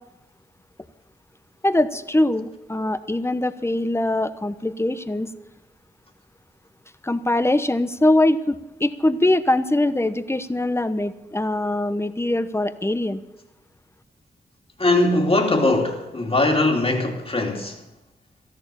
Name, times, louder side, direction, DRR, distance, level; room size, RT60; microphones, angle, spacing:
voice 1, 1.6-5.3 7.0-13.2, left 1 dB, 15° left, 0.9 m, -22 dB
voice 2, 14.8-17.8, left 2 dB, 30° left, 2.8 m, -20 dB
13.5 x 11.5 x 6.9 m
cardioid pair, 45°, 18 cm